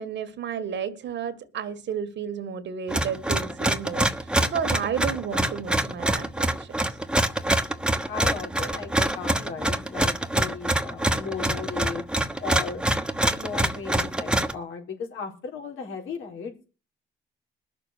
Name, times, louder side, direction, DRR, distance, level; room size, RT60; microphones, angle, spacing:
voice 1, 0.0-6.8, right 7 dB, 65° right, 1.8 m, -32 dB
sound 1, 2.9-14.5, right 1 dB, 5° right, 1.1 m, -25 dB
voice 2, 8.1-12.0 12.4-12.8 13.4-16.6, left 6 dB, 85° left, 4.2 m, -36 dB
20.5 x 6.9 x 6.6 m
cardioid pair, 90°, 20 cm